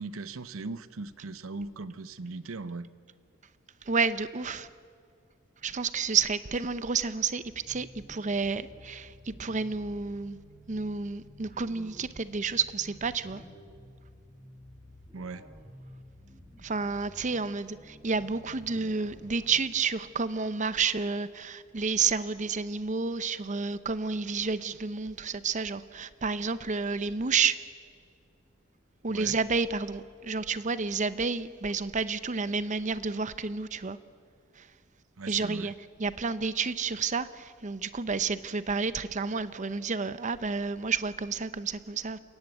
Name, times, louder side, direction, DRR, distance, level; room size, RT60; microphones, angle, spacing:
voice 1, 0.0-2.9 15.1-15.5 29.1-29.4 35.2-35.7, right 3 dB, 85° right, 15 dB, 0.8 m, -39 dB
voice 2, 3.9-4.7 5.6-10.4 10.7-13.4 16.6-27.6 29.0-34.0 34.6-34.7 35.3-35.7 36.0-42.2, right 5 dB, 35° right, 14 dB, 0.7 m, -30 dB
sound 1, 7.4-19.7, equal, 10° right, 6.4 m, -52 dB
28.5 x 16.0 x 9.2 m, 2.2 s
head